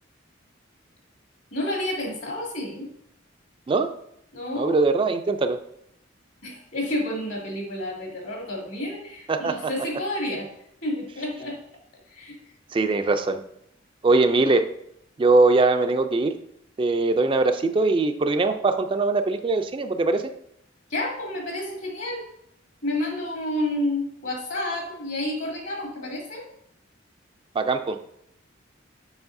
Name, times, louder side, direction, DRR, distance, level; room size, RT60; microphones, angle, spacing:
voice 1, 1.5-2.9 4.3-4.8 6.4-10.5 10.8-11.6 12.1-12.3 20.9-22.2 22.8-26.4, left 1 dB, 75° left, -2 dB, 2.5 m, -30 dB
voice 2, 4.5-5.6 9.3-9.6 12.7-13.4 14.0-14.6 15.2-16.3 16.8-20.3 27.6-28.0, right 3 dB, 25° right, 8 dB, 0.3 m, -21 dB
7.1 x 6.0 x 2.6 m, 0.74 s
head